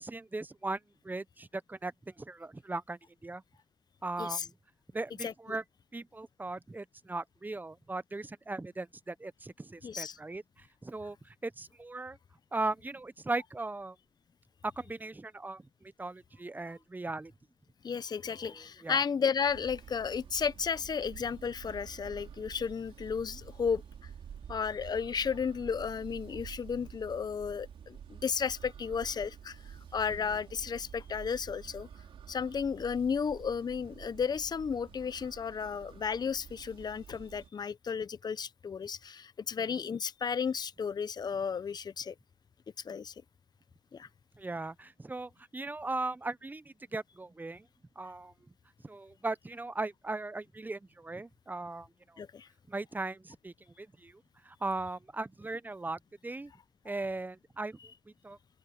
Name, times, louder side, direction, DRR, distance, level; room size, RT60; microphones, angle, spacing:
voice 1, 0.0-3.4 4.0-4.5 4.9-5.6 5.9-12.2 12.5-14.0 14.6-17.3 18.4-19.0 30.1-30.2 39.6-39.7 44.4-47.7 48.0-48.3 48.8-52.2 52.7-56.5 56.8-57.8 58.1-58.4, right 2 dB, 20° right, 0.7 m, -38 dB
voice 2, 9.8-10.2 17.8-23.8 24.5-31.9 32.3-42.1 42.8-43.1 43.9-44.1 52.2-52.5, left 6 dB, 50° left, 0.7 m, -33 dB
sound 1, 19.5-37.5, right 8 dB, 75° right, 3.7 m, -49 dB
open air
cardioid pair, 65°, 9 cm